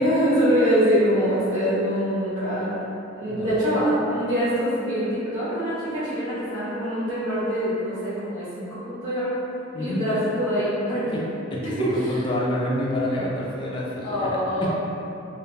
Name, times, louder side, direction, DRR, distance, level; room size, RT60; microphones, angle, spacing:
voice 1, 0.0-2.7 3.1-9.4 9.8-11.3 11.8-11.9 14.0-14.7, equal, 80° right, -16 dB, 1.0 m, -24 dB
voice 2, 3.3-3.6 9.7-10.1 11.1-11.2 11.5-14.7, left 1 dB, 25° left, -5 dB, 0.3 m, -28 dB
2.4 x 2.1 x 3.3 m, 2.9 s
head